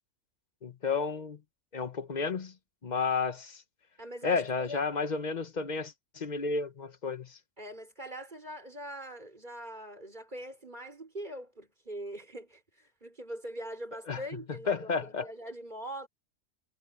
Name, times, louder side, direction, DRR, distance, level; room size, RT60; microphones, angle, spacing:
voice 1, 0.6-1.4 1.7-2.5 2.8-3.6 4.2-7.4 14.1-14.2 14.5-15.3, left 5 dB, 35° left, 1.2 m, -32 dB
voice 2, 4.0-4.8 7.6-16.1, right 1 dB, 35° right, 5.1 m, -42 dB
omnidirectional pair, 1.4 m